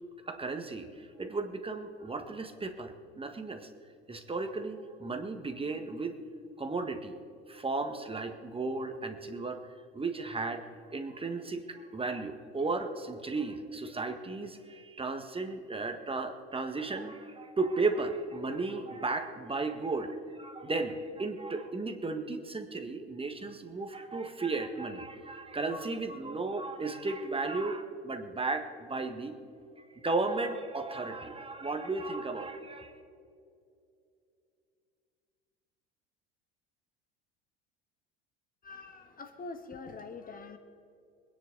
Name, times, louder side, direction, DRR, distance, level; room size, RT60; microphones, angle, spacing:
voice 1, 0.2-3.7 4.1-6.2 6.6-7.1 7.5-9.6 9.9-10.6 10.9-29.4 29.9-32.9, right 3 dB, 15° right, 6 dB, 1.6 m, -35 dB
voice 2, 38.6-40.6, left 4 dB, 25° left, 7 dB, 1.5 m, -44 dB
25.0 x 10.0 x 4.0 m, 2.5 s
figure-of-eight pair, 70°, 31 cm